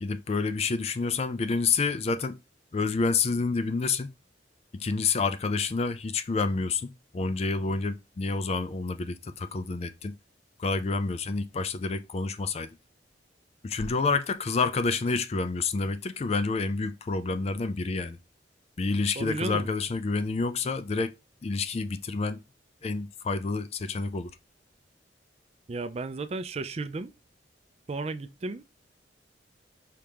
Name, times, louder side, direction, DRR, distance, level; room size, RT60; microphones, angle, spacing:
voice 1, 0.0-2.4 2.7-4.1 4.7-10.2 10.6-12.7 13.6-18.2 18.8-21.1 21.4-22.4 22.8-24.4, left 4 dB, 35° left, 0.4 m, -28 dB
voice 2, 19.2-19.7 25.7-27.1 27.9-28.6, right 3 dB, 35° right, 0.4 m, -33 dB
4.9 x 2.9 x 3.4 m
head